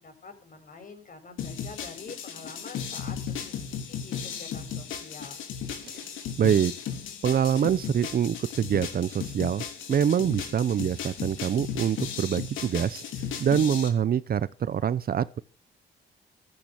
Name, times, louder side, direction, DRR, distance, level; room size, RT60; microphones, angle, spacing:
voice 1, 0.0-5.4, left 4 dB, 45° left, 6.4 m, -46 dB
sound 1, 1.4-13.9, left 7 dB, 80° left, 3.8 m, -36 dB
voice 2, 6.4-6.7 7.2-13.0 13.4-15.4, right 8 dB, 50° right, 0.8 m, -25 dB
14.5 x 13.5 x 6.1 m
cardioid pair, 90°, 20 cm